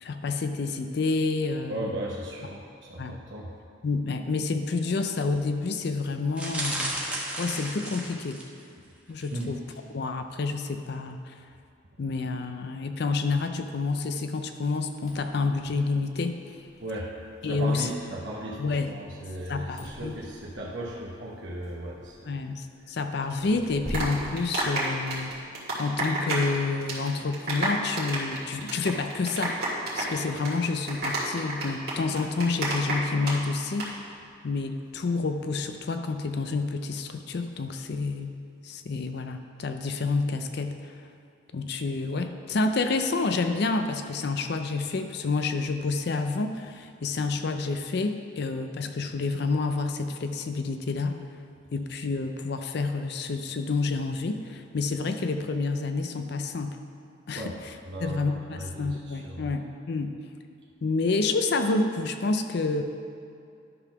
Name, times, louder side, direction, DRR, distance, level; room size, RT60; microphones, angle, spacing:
voice 1, 0.0-1.8 3.0-3.2 3.8-7.0 7.4-8.4 9.1-9.6 9.9-11.3 12.0-16.4 17.4-17.9 18.6-18.9 19.5-20.1 22.3-25.3 25.8-29.5 29.9-33.9 34.4-38.3 38.6-40.9 41.5-51.2 51.7-56.8 57.3-57.4 58.0-60.1 60.8-62.8, left 3 dB, 55° left, 7 dB, 0.5 m, -29 dB
voice 2, 1.7-3.5 9.3-9.5 16.8-17.1 17.4-22.4 57.4-57.6 57.9-59.5, right 1 dB, 70° right, -4 dB, 1.0 m, -36 dB
sound 1, 6.3-8.6 9.2-9.4 9.7-9.8, right 1 dB, 5° right, 1.0 m, -33 dB
sound 2, 14.9-25.4, equal, 35° left, 1.3 m, -45 dB
sound 3, 23.6-26.6 26.8-27.1 27.3-33.3 33.6-33.9, right 2 dB, 50° right, 2.1 m, -30 dB
11.0 x 4.0 x 5.8 m, 2.5 s
head